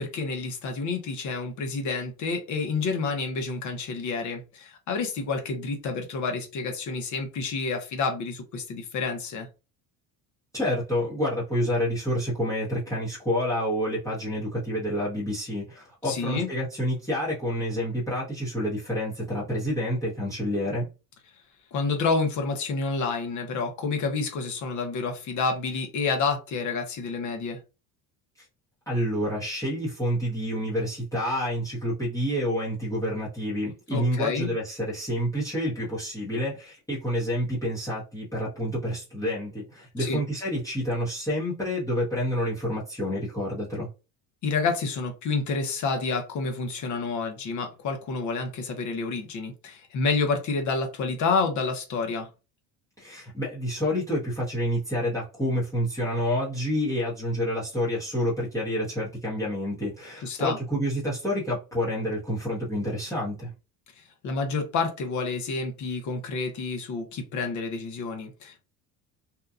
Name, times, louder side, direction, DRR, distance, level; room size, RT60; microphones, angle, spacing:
voice 1, 0.0-9.5 16.0-16.5 21.7-27.6 33.9-34.5 40.0-40.2 44.4-52.3 60.2-60.6 64.2-68.6, left 4 dB, 50° left, 0.8 m, -29 dB
voice 2, 10.5-20.9 28.9-43.9 53.0-63.5, equal, 10° left, 0.9 m, -28 dB
2.7 x 2.3 x 2.3 m
cardioid pair, 140°, 38 cm